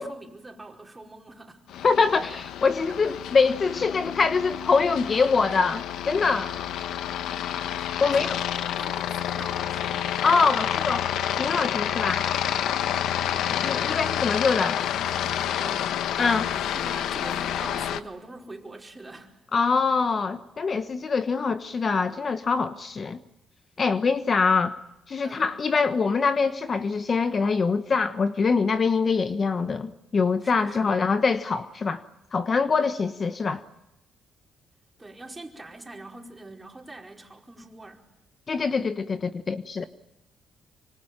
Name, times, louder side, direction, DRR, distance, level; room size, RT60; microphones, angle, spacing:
voice 1, 0.0-1.6 2.8-3.2 8.0-10.2 12.7-13.1 15.5-16.2 16.5-19.4 25.2-25.5 30.4-31.0 32.8-32.9 35.0-38.0, right 2 dB, 15° right, 4.9 m, -44 dB
Aircraft, 1.7-18.0, left 10 dB, 80° left, 1.1 m, -29 dB
voice 2, 1.8-6.5 8.0-8.4 10.2-11.1 11.4-12.2 13.5-14.8 16.2-16.5 19.5-23.2 23.8-24.8 25.1-32.0 32.3-33.6 38.5-39.8, left 4 dB, 40° left, 1.1 m, -24 dB
25.5 x 24.5 x 8.9 m
cardioid pair, 90°, 0 cm